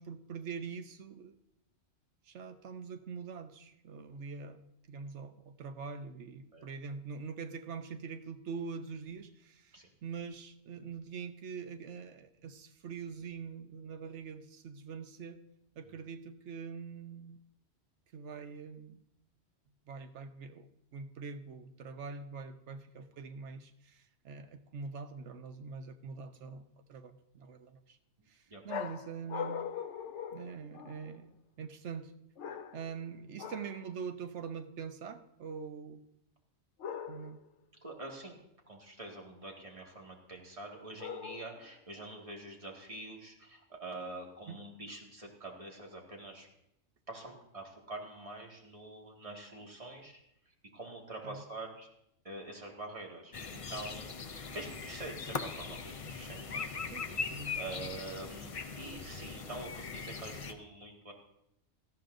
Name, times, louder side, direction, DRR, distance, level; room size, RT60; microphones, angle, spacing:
voice 1, 0.0-1.4 2.2-4.6 4.9-15.4 15.8-17.4 18.1-19.0 19.9-28.0 28.3-29.6 30.3-31.3 31.6-32.1 32.7-36.0 37.1-37.4 44.5-44.6 51.2-51.4 56.9-57.6, right 5 dB, 85° right, 9 dB, 1.1 m, -44 dB
voice 2, 28.5-28.8 37.8-38.4 38.7-46.5 47.1-50.2 50.7-51.9 52.2-56.7 57.6-61.1, right 2 dB, 30° right, -1 dB, 2.0 m, -46 dB
sound 1, 28.7-31.2 32.4-33.0 33.4-33.9 36.8-37.5 41.0-41.7, left 8 dB, 90° left, 0.9 m, -41 dB
sound 2, 53.3-60.5, left 5 dB, 35° left, 0.6 m, -40 dB
17.5 x 13.5 x 2.6 m, 0.79 s
omnidirectional pair, 1.2 m